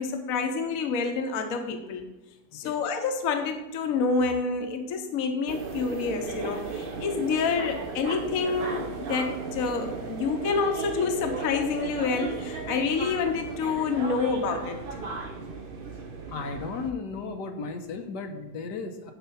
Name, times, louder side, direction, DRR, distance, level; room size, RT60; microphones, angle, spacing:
voice 1, 0.0-2.1 2.5-14.8, left 4 dB, 60° left, 6 dB, 1.3 m, -28 dB
sound 1, 5.5-16.9, right 4 dB, 45° right, 0.8 m, -36 dB
voice 2, 16.3-19.1, left 4 dB, 80° left, 5 dB, 1.5 m, -35 dB
10.5 x 4.8 x 5.6 m, 0.99 s
omnidirectional pair, 1.8 m